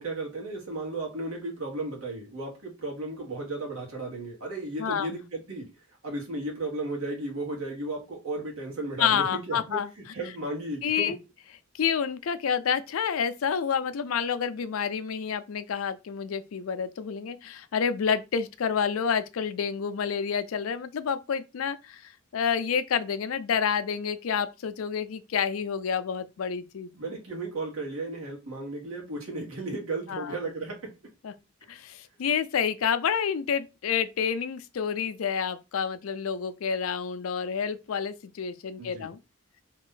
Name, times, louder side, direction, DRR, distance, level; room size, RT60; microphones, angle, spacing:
voice 1, 0.0-5.7 6.0-11.1 26.9-30.9 38.8-39.1, right 2 dB, 85° right, 1.5 m, -34 dB
voice 2, 4.8-5.2 9.0-9.9 10.8-11.2 11.8-26.9 30.1-30.4 31.2-31.3 31.7-39.2, left 7 dB, 75° left, 0.4 m, -29 dB
3.0 x 2.5 x 3.8 m
head